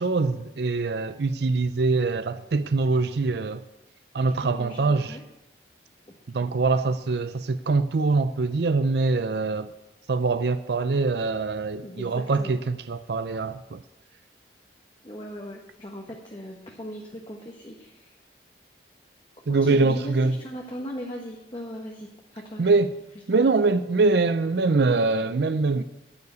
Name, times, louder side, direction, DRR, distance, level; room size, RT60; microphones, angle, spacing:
voice 1, 0.0-3.6 4.1-5.2 6.3-9.7 10.1-13.8 19.5-20.4 22.6-22.9 23.3-25.8, right 3 dB, 65° right, 0.5 m, -23 dB
voice 2, 4.4-5.2 6.1-6.2 11.8-12.6 15.0-18.2 19.5-22.6, equal, 30° left, 1.2 m, -39 dB
9.8 x 9.5 x 8.2 m
head